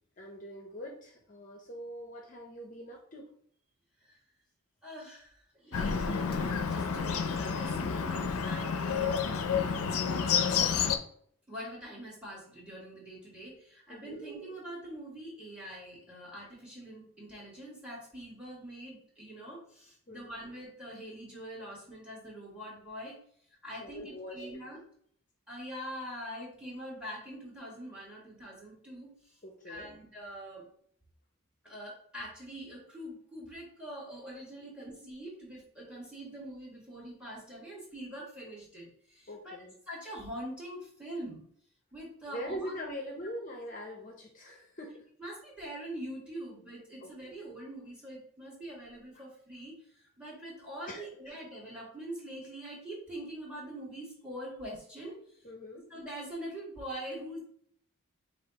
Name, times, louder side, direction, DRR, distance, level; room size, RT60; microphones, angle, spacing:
voice 1, 0.2-3.2 13.9-14.3 20.1-20.4 23.7-24.6 29.4-29.9 34.7-34.9 39.3-39.8 42.3-45.0 47.0-47.1 49.1-49.2 50.9-51.4 55.4-55.9, equal, 35° left, 1 dB, 0.6 m, -43 dB
voice 2, 4.8-9.2 10.1-10.6 11.5-23.2 23.6-24.8 25.5-29.4 29.6-30.7 31.6-39.6 39.9-41.4 41.9-42.8 45.2-49.8 50.2-55.2 55.9-57.4, right 1 dB, 5° right, -4 dB, 1.6 m, -44 dB
Bird, 5.7-11.0, left 6 dB, 80° left, 0.5 m, -30 dB
5.4 x 2.4 x 4.0 m, 0.63 s
head